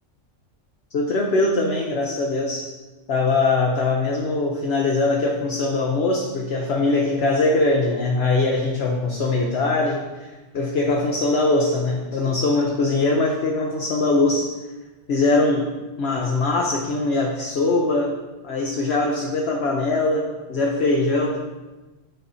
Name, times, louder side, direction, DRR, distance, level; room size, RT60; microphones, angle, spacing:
voice 1, 0.9-2.7 3.1-10.3 10.5-14.5 15.1-15.7 16.0-18.2 18.4-21.4, left 2 dB, 60° left, -1 dB, 1.0 m, -21 dB
11.0 x 4.2 x 4.1 m, 1.2 s
omnidirectional pair, 1.3 m